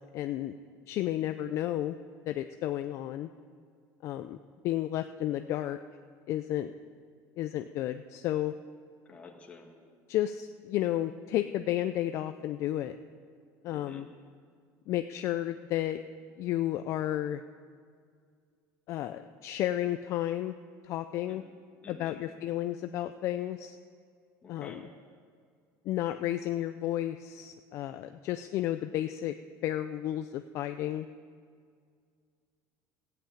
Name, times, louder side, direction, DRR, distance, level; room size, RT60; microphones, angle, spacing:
voice 1, 0.1-0.6 0.9-2.0 2.3-3.3 4.0-4.4 4.6-5.8 6.3-6.7 7.4-8.5 10.1-13.0 13.6-14.1 14.9-16.0 16.4-17.4 18.9-20.6 20.8-21.5 21.9-23.8 24.5-24.8 25.9-29.3 29.6-31.1, left 13 dB, 45° left, 9 dB, 0.4 m, -32 dB
voice 2, 9.0-9.7 13.7-14.0 21.3-21.4 21.8-22.2 24.4-24.8, left 4 dB, 20° left, 1 dB, 1.7 m, -49 dB
14.5 x 7.9 x 8.6 m, 2.1 s
cardioid pair, 170°, 7 cm